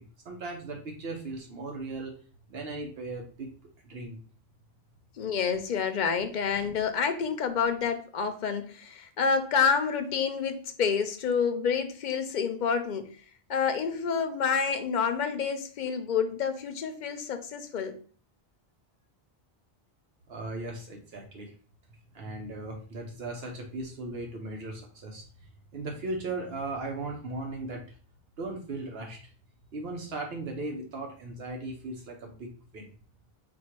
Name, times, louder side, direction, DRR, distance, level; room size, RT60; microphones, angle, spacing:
voice 1, 0.0-2.1 2.5-3.5 3.8-4.2 20.3-21.5 22.1-25.2 25.7-27.8 28.4-29.2 29.7-32.9, right 2 dB, 75° right, 2 dB, 1.0 m, -37 dB
voice 2, 5.2-13.1 13.5-18.0, left 6 dB, 55° left, 7 dB, 0.6 m, -28 dB
4.3 x 2.3 x 4.4 m, 0.42 s
omnidirectional pair, 1.1 m